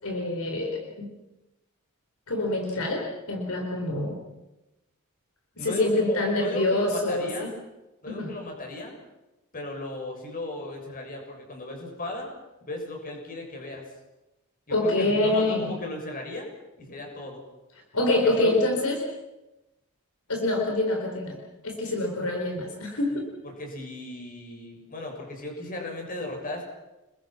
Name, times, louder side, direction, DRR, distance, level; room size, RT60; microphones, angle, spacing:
voice 1, 0.0-1.1 2.3-4.2 5.6-7.5 8.1-8.3 14.7-15.8 17.9-19.0 20.3-21.4 21.6-23.3, left 2 dB, 75° left, 2 dB, 4.4 m, -26 dB
voice 2, 5.6-7.5 8.0-9.0 9.5-12.3 12.7-13.8 14.7-16.5 16.8-17.4 18.2-18.5 23.4-26.6, left 2 dB, 40° left, 2 dB, 6.7 m, -36 dB
29.5 x 21.5 x 6.0 m, 0.98 s
head